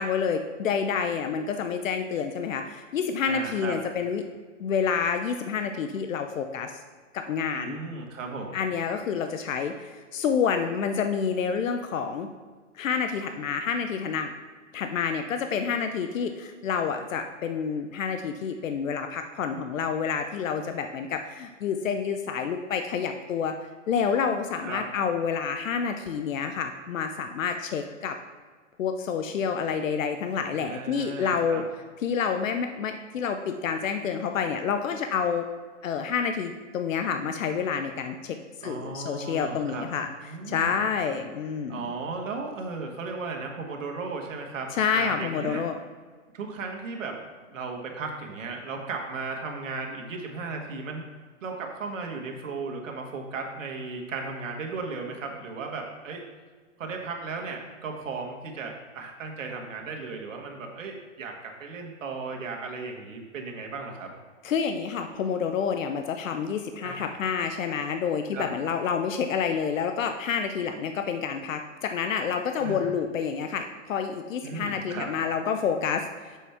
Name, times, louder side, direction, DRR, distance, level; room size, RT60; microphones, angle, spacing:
voice 1, 0.0-4.2 4.6-6.8 7.1-7.8 8.5-12.3 12.8-14.3 14.7-23.6 23.9-28.2 28.8-31.6 32.0-35.5 35.8-38.4 38.6-40.1 40.5-41.9 44.7-45.8 64.4-76.4, left 6 dB, 85° left, 7 dB, 0.7 m, -28 dB
voice 2, 3.3-3.8 7.5-8.6 24.6-24.8 30.5-31.6 38.6-39.9 40.2-40.8 41.7-45.6 46.3-47.2 47.5-51.0 51.4-56.2 56.8-64.1 66.8-67.1 68.3-68.5 72.6-72.9 74.4-75.1, right 4 dB, 80° right, 1 dB, 1.6 m, -36 dB
7.3 x 5.6 x 3.5 m, 1.5 s
hypercardioid pair, 145°, 38 cm